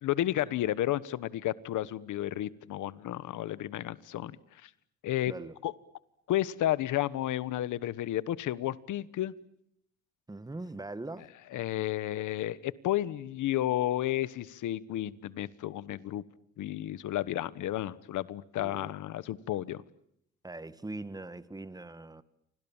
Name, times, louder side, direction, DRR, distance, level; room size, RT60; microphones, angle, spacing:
voice 1, 0.0-4.4 4.6-4.7 5.0-5.3 5.6-5.7 6.3-9.3 11.5-16.2 16.6-19.8, left 13 dB, 80° left, 1.3 m, -32 dB
voice 2, 10.3-11.3 18.6-18.9 20.4-22.2, right 2 dB, 10° right, 1.6 m, -41 dB
30.0 x 25.5 x 7.3 m
cardioid pair, 90°, 30 cm